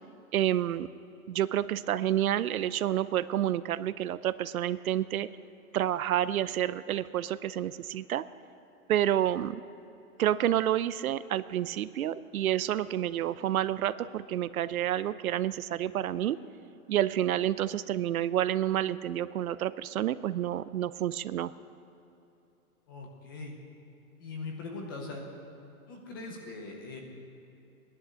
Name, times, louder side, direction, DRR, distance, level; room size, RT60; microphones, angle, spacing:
voice 1, 0.3-0.9 1.3-5.3 5.7-8.3 8.9-9.6 10.2-16.4 16.9-21.5, right 12 dB, 70° right, 16 dB, 0.6 m, -29 dB
voice 2, 22.9-23.5 24.2-25.3 25.9-27.0, left 3 dB, 15° left, 1 dB, 0.8 m, -41 dB
17.0 x 11.0 x 6.3 m, 2.9 s
hypercardioid pair, 180°, 44 cm